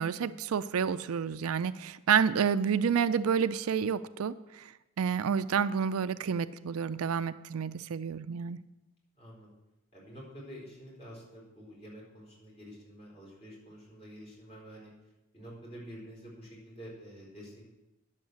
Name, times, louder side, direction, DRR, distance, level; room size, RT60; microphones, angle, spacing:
voice 1, 0.0-4.7 5.0-8.6, right 7 dB, 75° right, 13 dB, 0.4 m, -29 dB
voice 2, 9.2-9.5 9.9-14.9 15.3-17.7, equal, 30° left, -5 dB, 4.4 m, -48 dB
10.5 x 7.4 x 7.9 m, 0.99 s
head